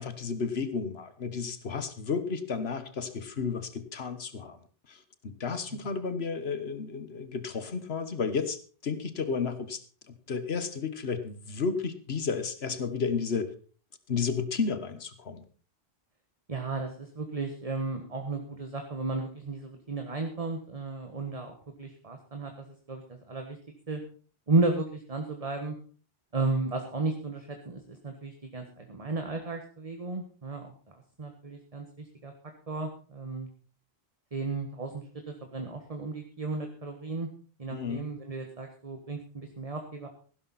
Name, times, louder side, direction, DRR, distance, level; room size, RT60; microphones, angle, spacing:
voice 1, 0.0-4.6 4.9-9.8 10.1-13.5 14.1-15.4 37.7-38.1, left 5 dB, 75° left, 12 dB, 1.6 m, -32 dB
voice 2, 16.5-23.6 23.9-24.0 24.5-25.7 26.3-32.3 32.7-33.5 34.3-37.3 37.6-40.1, right 3 dB, 35° right, 4 dB, 1.5 m, -34 dB
15.5 x 12.0 x 4.2 m, 0.40 s
omnidirectional pair, 1.1 m